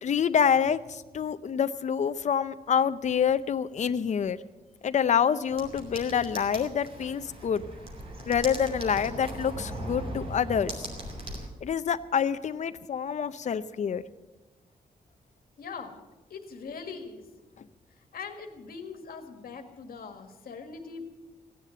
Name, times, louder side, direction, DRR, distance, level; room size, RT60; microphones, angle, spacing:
voice 1, 0.0-4.4 4.8-7.6 8.3-10.9 11.6-14.0, left 7 dB, 50° left, 12 dB, 0.6 m, -27 dB
sound 1, 5.5-11.5, right 1 dB, 40° right, 2.8 m, -39 dB
voice 2, 15.6-16.0 16.3-17.2 18.1-21.1, left 5 dB, 80° left, 5 dB, 1.8 m, -41 dB
16.0 x 10.5 x 7.7 m, 1.1 s
wide cardioid pair, 180°, 15 cm